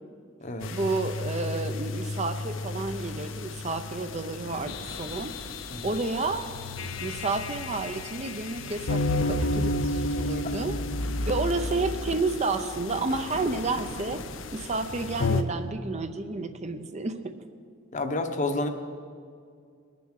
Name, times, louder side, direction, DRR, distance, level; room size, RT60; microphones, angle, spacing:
sound 1, 0.6-15.4, left 2 dB, 70° left, 0.7 m, -32 dB
voice 1, 0.7-5.3 5.8-6.5 7.0-10.8 11.3-14.2 14.5-17.4, right 3 dB, 35° right, 8 dB, 0.6 m, -30 dB
voice 2, 17.9-18.7, left 2 dB, 40° left, 6 dB, 0.9 m, -30 dB
20.5 x 7.0 x 6.4 m, 2.2 s
head